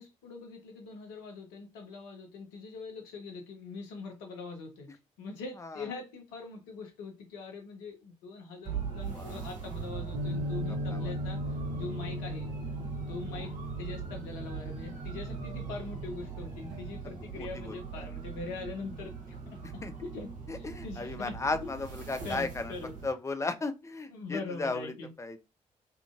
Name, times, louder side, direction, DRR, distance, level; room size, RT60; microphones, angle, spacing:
voice 1, 0.0-4.9 5.2-12.5 13.1-13.5 13.8-21.3 22.2-22.9 24.1-25.1, left 4 dB, 70° left, 0.7 m, -42 dB
sound 1, 8.6-23.1, right 6 dB, 45° right, 1.0 m, -40 dB
sound 2, 10.1-16.9, left 1 dB, 70° right, 0.5 m, -38 dB
voice 2, 10.7-11.1 13.3-13.5 17.3-18.1 19.6-19.9 20.5-22.7 23.0-25.4, left 3 dB, 15° left, 0.4 m, -36 dB
2.7 x 2.4 x 2.3 m
figure-of-eight pair, 40°, 18 cm